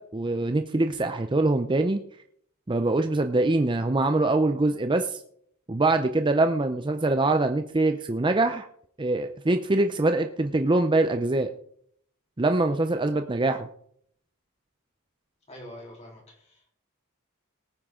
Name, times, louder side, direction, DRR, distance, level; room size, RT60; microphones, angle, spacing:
voice 1, 0.0-2.0 2.7-5.2 5.7-8.7 9.0-11.5 12.4-13.7, right 2 dB, 20° right, 7 dB, 0.6 m, -24 dB
voice 2, 15.5-16.7, left 1 dB, 30° left, -2 dB, 3.7 m, -45 dB
19.0 x 9.2 x 3.8 m, 0.66 s
head